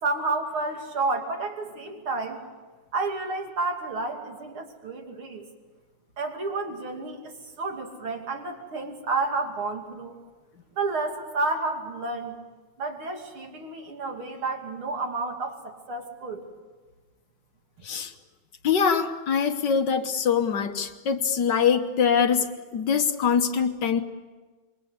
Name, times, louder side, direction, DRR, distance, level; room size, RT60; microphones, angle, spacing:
voice 1, 0.0-2.4 2.9-5.5 6.2-10.2 10.8-12.4 12.8-16.4, right 3 dB, 90° right, 3 dB, 3.6 m, -30 dB
voice 2, 18.6-24.0, left 7 dB, 60° left, 8 dB, 1.8 m, -23 dB
26.5 x 23.5 x 8.1 m, 1.3 s
omnidirectional pair, 2.2 m